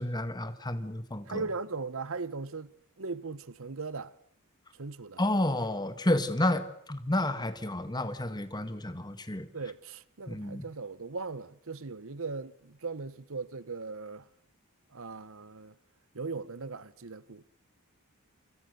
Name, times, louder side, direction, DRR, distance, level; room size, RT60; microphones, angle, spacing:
voice 1, 0.0-1.4 5.2-9.5 10.3-10.7, left 1 dB, 20° left, 1.9 m, -30 dB
voice 2, 1.3-2.7 3.0-4.1 4.8-5.2 9.5-14.3 14.9-15.7 16.1-17.5, right 4 dB, 65° right, 1.0 m, -38 dB
28.0 x 26.0 x 6.8 m
head